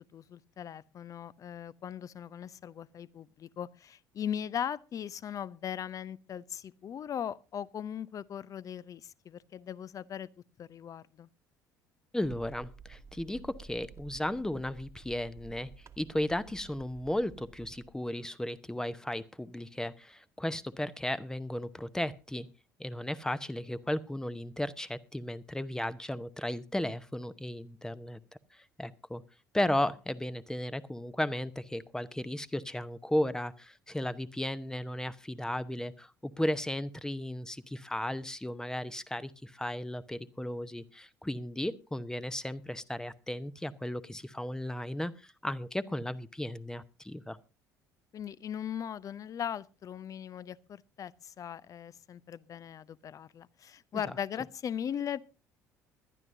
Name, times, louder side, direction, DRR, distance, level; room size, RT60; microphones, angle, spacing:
voice 1, 0.1-10.3 10.6-11.3 48.1-55.2, left 9 dB, 35° left, 0.6 m, -39 dB
voice 2, 12.1-15.7 16.0-22.5 22.8-28.2 28.5-29.2 29.5-47.4, left 1 dB, 5° left, 0.8 m, -35 dB
sound 1, 12.2-17.9, right 5 dB, 30° right, 1.3 m, -52 dB
21.0 x 12.0 x 2.6 m
figure-of-eight pair, 55°, 9 cm